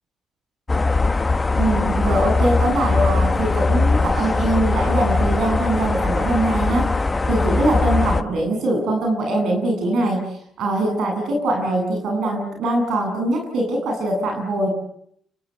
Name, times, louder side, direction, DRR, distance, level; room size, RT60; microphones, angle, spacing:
sound 1, 0.7-8.2, left 3 dB, 25° left, 1.3 m, -20 dB
voice 1, 1.5-7.0 7.3-14.7, right 1 dB, 75° right, 3 dB, 8.0 m, -22 dB
29.5 x 24.5 x 8.0 m, 0.70 s
cardioid pair, 90°, 0 cm